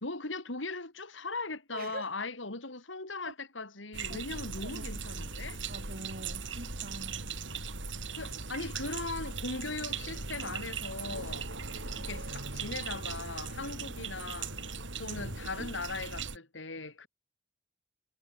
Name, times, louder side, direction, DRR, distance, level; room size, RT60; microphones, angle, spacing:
voice 1, 0.0-5.6 8.2-11.5 12.0-14.6 15.0-17.1, left 3 dB, 85° left, 3.8 m, -39 dB
voice 2, 1.7-2.0 3.3-3.4 4.1-4.2 4.6-5.3 5.7-7.3, right 2 dB, 55° right, 3.5 m, -45 dB
sound 1, 3.9-16.4, right 4 dB, 80° right, 7.2 m, -39 dB
head